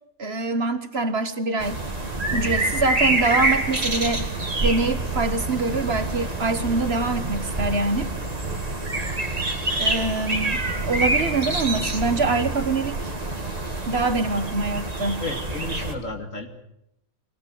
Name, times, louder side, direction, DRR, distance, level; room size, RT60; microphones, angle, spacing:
voice 1, 0.2-1.8 2.3-4.2 4.6-8.1 9.8-13.1 13.9-15.2, right 3 dB, 45° right, 10 dB, 1.5 m, -24 dB
sound 1, 1.6-16.0, right 2 dB, 25° right, 2.6 m, -26 dB
voice 2, 15.2-16.5, left 3 dB, 65° left, 4 dB, 3.2 m, -33 dB
24.0 x 18.5 x 8.8 m, 0.81 s
omnidirectional pair, 1.5 m